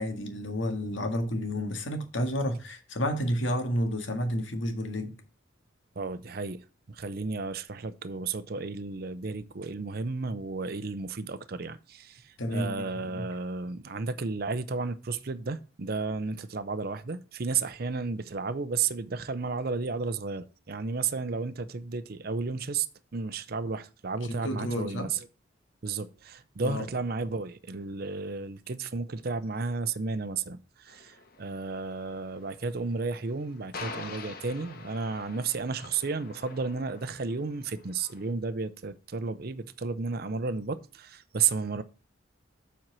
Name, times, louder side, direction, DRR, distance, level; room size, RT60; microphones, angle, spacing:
voice 1, 0.0-5.2 12.4-13.3 24.2-25.1 26.6-26.9, equal, 75° left, 1.8 m, -31 dB
voice 2, 6.0-22.9 23.1-25.3 25.8-41.8, right 4 dB, 50° right, 0.6 m, -33 dB
sound 1, 30.9-38.3, left 4 dB, 50° left, 1.2 m, -45 dB
7.6 x 4.5 x 6.1 m
head